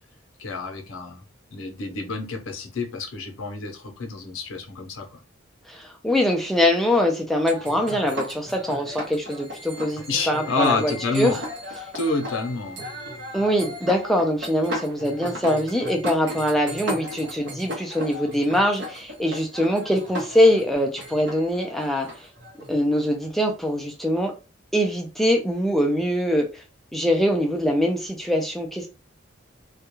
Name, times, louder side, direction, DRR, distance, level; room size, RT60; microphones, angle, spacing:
voice 1, 0.4-1.2 1.5-5.2 10.1-11.4 11.9-12.8, left 3 dB, 75° left, 0.6 m, -28 dB
voice 2, 5.7-11.3 13.3-22.1 22.7-24.3 24.7-26.6 26.9-28.9, equal, ahead, 0.3 m, -23 dB
sound 1, 7.5-23.8, left 1 dB, 55° right, 0.7 m, -36 dB
2.3 x 2.1 x 2.9 m
head